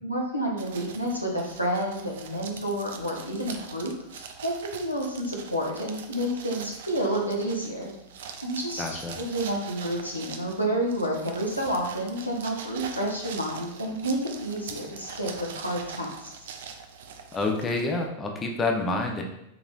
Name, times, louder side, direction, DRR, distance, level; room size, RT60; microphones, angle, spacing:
voice 1, 0.0-7.9 8.4-16.5, right 1 dB, 90° left, -2 dB, 0.7 m, -30 dB
sound 1, 0.6-18.1, right 6 dB, 55° right, 0.3 m, -43 dB
voice 2, 8.8-9.2 17.3-19.2, left 3 dB, 20° left, 2 dB, 0.5 m, -28 dB
3.8 x 2.9 x 2.3 m, 0.82 s
figure-of-eight pair, 90°, 0 cm